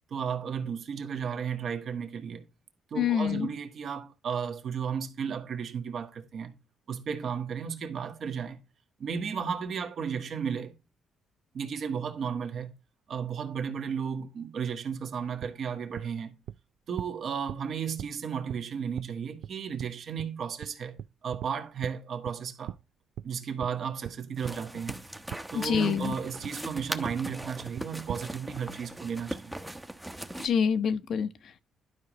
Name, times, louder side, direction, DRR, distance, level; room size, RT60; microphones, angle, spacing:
voice 1, 0.1-2.4 2.9-6.6 6.9-8.6 9.0-10.7 11.5-12.7 13.1-16.3 16.9-22.7 23.2-25.0 25.5-29.5, right 7 dB, 60° right, 1.4 m, -34 dB
voice 2, 2.9-3.5 25.5-26.2 30.4-31.6, left 7 dB, 65° left, 0.9 m, -27 dB
sound 1, 15.4-15.5 16.0-16.1 16.5-16.6 17.0-17.1 17.5-17.6 18.0-18.1 18.5-18.6 19.0-19.1 19.4-19.5 19.8-19.9 20.2-20.3 20.6-20.7 21.0-21.5 21.8-21.9 22.3-22.4 22.7-22.8 23.2-23.3 23.6-23.7 24.0-24.1 24.4-24.5 24.9-25.0 25.3-25.4 25.7-25.9 26.1-26.5 26.8-26.9 27.1-27.5 27.8-28.2, right 11 dB, 75° right, 0.3 m, -39 dB
sound 2, 24.4-30.5, right 1 dB, 10° right, 0.8 m, -40 dB
12.0 x 5.1 x 3.1 m
cardioid pair, 90°, 0 cm